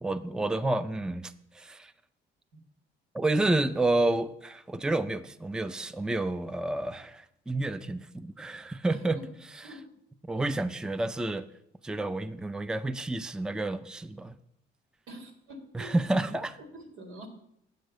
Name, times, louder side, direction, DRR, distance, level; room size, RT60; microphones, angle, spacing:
voice 1, 0.0-1.9 3.1-9.2 10.3-11.5 11.8-14.3 15.7-16.5, right 2 dB, 5° right, 0.4 m, -30 dB
voice 2, 8.9-9.3 9.6-9.9 15.1-16.3 16.6-17.3, right 1 dB, 85° right, 2.1 m, -45 dB
8.0 x 6.6 x 6.4 m
cardioid pair, 90°, 20 cm